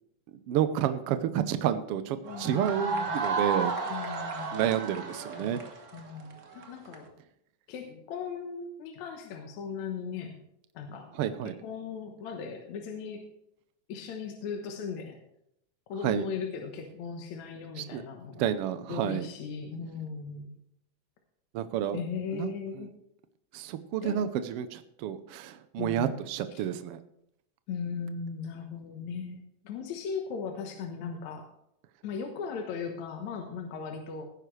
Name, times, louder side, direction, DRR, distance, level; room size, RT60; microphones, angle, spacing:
voice 1, 0.5-3.7 4.5-5.6 11.2-11.5 16.0-16.2 17.8-18.0 18.4-19.3 21.5-22.0 22.3-22.5 23.5-27.0, right 10 dB, 90° right, 11 dB, 1.3 m, -30 dB
voice 2, 2.2-3.2 3.9-5.6 5.9-7.1 7.7-10.4 10.7-11.1 11.4-13.2 13.9-15.2 15.9-18.4 18.9-20.6 21.9-22.9 24.0-24.2 25.8-26.2 26.5-26.6 27.7-31.5 32.0-34.3, left 5 dB, 70° left, 3 dB, 2.4 m, -38 dB
sound 1, 2.2-7.0, right 4 dB, 55° right, 0.8 m, -33 dB
17.5 x 9.9 x 3.2 m, 0.77 s
omnidirectional pair, 3.5 m